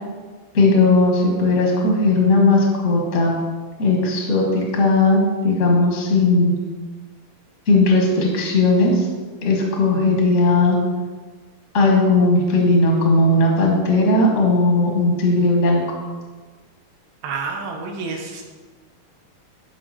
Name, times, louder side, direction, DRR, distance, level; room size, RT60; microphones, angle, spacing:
voice 1, 0.5-3.3 3.8-6.5 7.7-9.1 9.4-10.8 11.7-15.8, left 2 dB, 40° left, -1 dB, 1.0 m, -17 dB
voice 2, 17.2-18.4, right 4 dB, 80° right, 2 dB, 3.1 m, -29 dB
13.0 x 5.4 x 4.4 m, 1.4 s
omnidirectional pair, 4.3 m